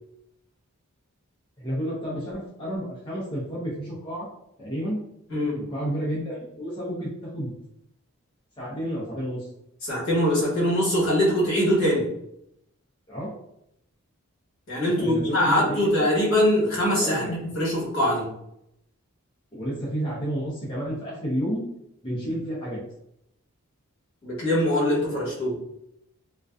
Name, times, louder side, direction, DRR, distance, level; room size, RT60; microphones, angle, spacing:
voice 1, 1.6-4.3 4.6-5.0 5.6-7.5 8.6-9.5 13.1-13.3 15.0-15.9 17.0-17.4 19.5-21.6 22.0-22.8, equal, 20° left, -8 dB, 0.6 m, -30 dB
voice 2, 9.8-12.1 14.7-18.3 24.2-25.6, equal, 65° left, -6 dB, 1.2 m, -23 dB
2.4 x 2.2 x 2.3 m, 0.78 s
head